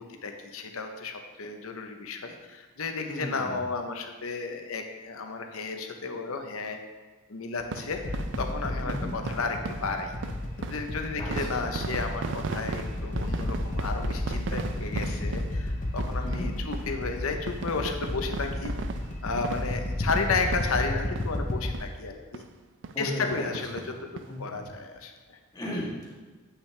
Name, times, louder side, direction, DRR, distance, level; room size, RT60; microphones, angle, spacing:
voice 1, 0.0-6.8 7.3-10.1 10.6-18.7 19.2-22.4 23.0-24.1 24.4-25.4, left 4 dB, 75° left, 5 dB, 0.8 m, -33 dB
voice 2, 3.1-3.5 8.8-9.1 11.2-11.6 16.2-16.5 22.9-23.7 24.3-24.6 25.5-26.2, left 1 dB, 20° left, -4 dB, 1.4 m, -36 dB
sound 1, 7.6-21.5 21.7-21.9 22.3-22.4 22.8-23.0 23.3-24.3 24.7-24.8 25.0-25.1, right 4 dB, 55° right, 0.4 m, -37 dB
sound 2, 7.9-21.8, left 1 dB, 35° left, 0.6 m, -33 dB
8.4 x 5.7 x 3.3 m, 1.3 s
head